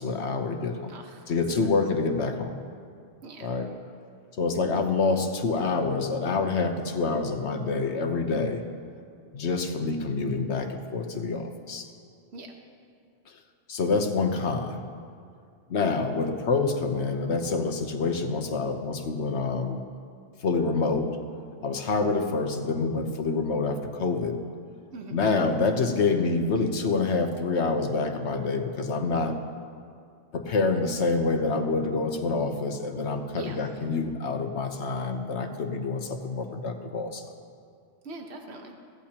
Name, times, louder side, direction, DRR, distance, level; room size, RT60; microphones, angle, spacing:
voice 1, 0.0-0.9 1.3-2.6 3.4-3.7 4.4-8.6 9.3-11.9 13.7-14.8 15.7-19.8 20.4-21.1 21.6-24.4 25.1-29.4 30.3-37.2, left 4 dB, 65° left, 5 dB, 1.2 m, -27 dB
voice 2, 0.9-1.3 3.2-3.5 12.3-12.5 24.9-25.2 33.3-33.6 38.0-38.7, right 3 dB, 60° right, 2 dB, 1.4 m, -42 dB
23.0 x 15.5 x 2.9 m, 2.3 s
omnidirectional pair, 1.3 m